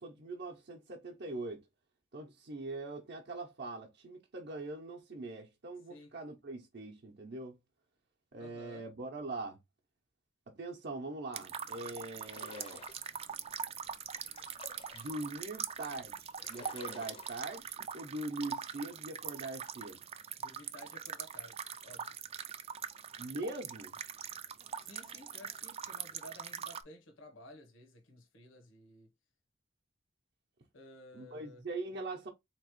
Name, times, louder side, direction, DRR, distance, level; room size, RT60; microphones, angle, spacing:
voice 1, 0.0-1.6 2.1-7.6 8.3-9.6 10.6-12.8 14.9-20.0 23.2-23.9 31.1-32.3, right 2 dB, 55° right, 0.7 m, -42 dB
voice 2, 8.4-8.9 20.4-22.1 24.7-29.1 30.7-31.6, left 1 dB, 80° left, 0.9 m, -54 dB
sound 1, 11.3-26.8, right 8 dB, 30° right, 0.3 m, -43 dB
sound 2, 12.2-13.3 13.9-15.4 15.9-16.0 16.3-17.6, left 4 dB, 30° left, 0.5 m, -53 dB
4.0 x 3.0 x 3.0 m
head